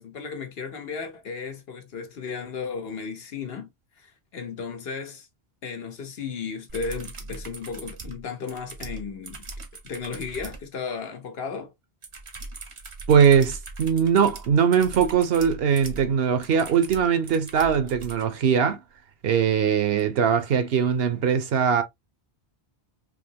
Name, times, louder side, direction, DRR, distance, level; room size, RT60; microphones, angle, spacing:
voice 1, 0.0-3.7 4.0-5.3 5.6-9.5 9.8-11.7, left 5 dB, 70° left, 1.0 m, -35 dB
sound 1, 6.7-10.7 12.0-18.3 20.0-20.1, right 3 dB, 35° right, 0.6 m, -40 dB
voice 2, 13.1-18.8 19.2-21.8, right 7 dB, 70° right, 0.9 m, -21 dB
3.6 x 2.8 x 2.7 m
omnidirectional pair, 1.1 m